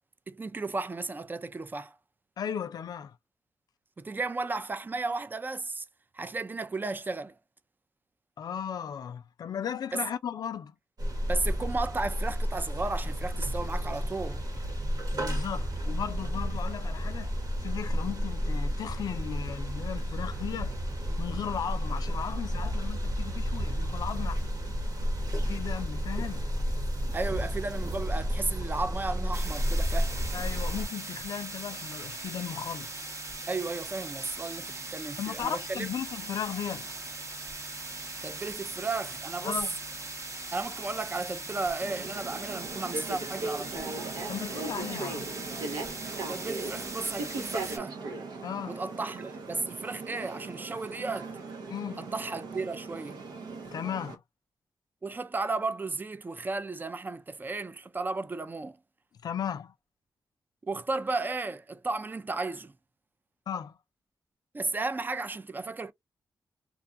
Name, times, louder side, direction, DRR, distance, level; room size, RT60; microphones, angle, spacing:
voice 1, 0.3-1.9 4.0-5.8 6.1-7.4 9.9-10.1 11.3-14.4 27.1-30.2 33.5-35.9 38.2-39.6 40.5-44.0 46.3-48.0 48.7-51.3 52.0-53.2 55.0-58.8 60.6-62.7 64.5-65.9, right 3 dB, 25° right, 0.4 m, -34 dB
voice 2, 2.4-3.2 8.4-10.7 15.1-17.3 17.6-20.8 21.2-24.4 25.4-26.4 30.3-33.1 35.2-37.0 39.4-39.8 44.3-45.3 48.4-48.8 51.7-52.0 53.7-54.2 59.2-59.7 63.5-63.7, left 8 dB, 70° left, 0.3 m, -36 dB
sound 1, 11.0-30.9, equal, 65° right, 1.2 m, -31 dB
sound 2, 29.3-47.8, right 3 dB, 45° right, 0.8 m, -40 dB
sound 3, 41.8-54.1, right 3 dB, 80° right, 0.6 m, -39 dB
2.6 x 2.3 x 2.5 m
cardioid pair, 65°, 7 cm